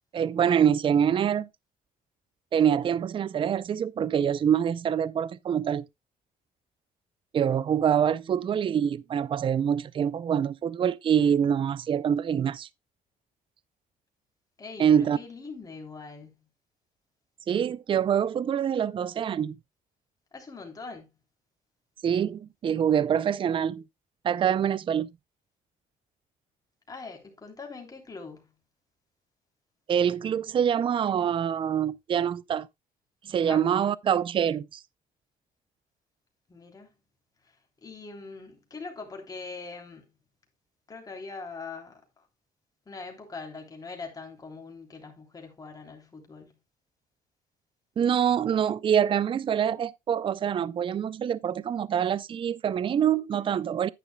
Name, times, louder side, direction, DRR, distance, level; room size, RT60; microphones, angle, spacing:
voice 1, 0.1-1.5 2.5-5.9 7.3-12.7 14.8-15.2 17.5-19.6 22.0-23.8 24.2-25.1 29.9-32.7 33.2-34.8 48.0-53.9, right 8 dB, 35° right, 0.4 m, -25 dB
voice 2, 14.6-16.4 20.3-21.1 26.9-28.5 33.5-33.6 36.5-36.9 37.8-40.1 40.9-42.0 42.9-46.5, left 4 dB, 25° left, 3.2 m, -42 dB
10.0 x 9.8 x 2.2 m
cardioid pair, 130°, 15 cm